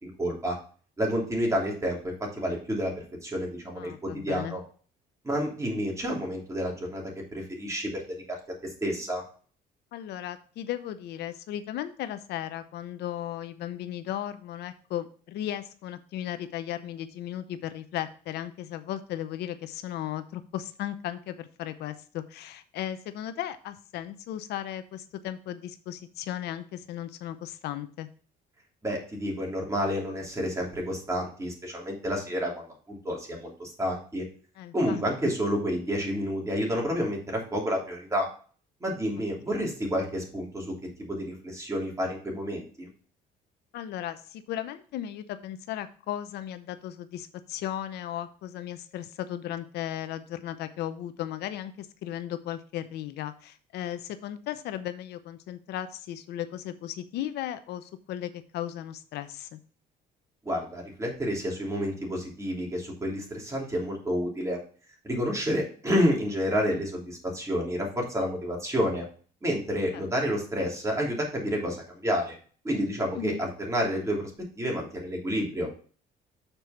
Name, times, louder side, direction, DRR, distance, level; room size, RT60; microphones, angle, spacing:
voice 1, 0.0-0.6 1.0-2.9 3.2-4.6 5.2-8.0 8.8-9.2 28.8-34.2 34.7-38.3 38.8-42.9 60.4-64.6 65.0-69.1 69.4-72.4 72.6-74.3 74.6-75.7, equal, 15° right, -1 dB, 3.0 m, -29 dB
voice 2, 3.8-4.6 9.9-28.1 34.6-35.0 39.5-39.7 43.7-59.6 69.9-70.0 73.1-73.4, left 11 dB, 75° left, 11 dB, 0.7 m, -36 dB
6.8 x 4.6 x 5.6 m, 0.42 s
cardioid pair, 110°, 17 cm